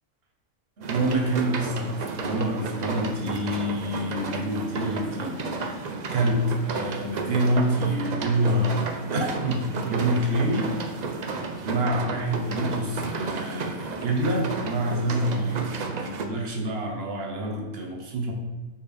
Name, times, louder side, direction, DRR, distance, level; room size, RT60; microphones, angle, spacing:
voice 1, 0.8-10.7 11.6-15.6 16.0-18.3, right 1 dB, 45° right, 1 dB, 1.2 m, -27 dB
sound 1, 0.8-16.3, right 4 dB, 85° right, 0.3 m, -33 dB
5.5 x 4.5 x 5.0 m, 1.3 s
omnidirectional pair, 1.6 m